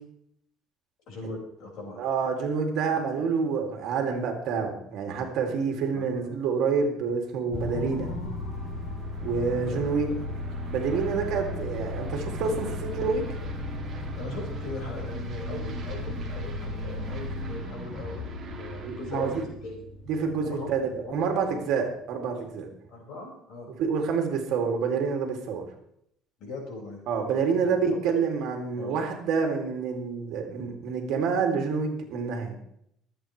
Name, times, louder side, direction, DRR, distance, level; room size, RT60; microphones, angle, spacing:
voice 1, 1.1-2.0 5.9-6.3 9.5-9.9 14.1-19.8 20.4-20.7 21.0-21.6 22.9-23.7 26.4-27.0 27.6-28.0 28.8-29.0, left 2 dB, 50° left, -1 dB, 5.3 m, -40 dB
voice 2, 2.0-8.1 9.2-10.1 10.7-13.2 18.8-19.4 20.1-22.7 23.8-25.6 27.1-32.6, right 5 dB, 55° right, 3 dB, 2.4 m, -28 dB
sound 1, 7.5-22.0, left 2 dB, 35° left, 2.3 m, -36 dB
Aircraft, 8.5-19.5, right 3 dB, 25° right, 2.0 m, -42 dB
24.0 x 8.5 x 3.2 m, 0.74 s
cardioid pair, 170°, 0 cm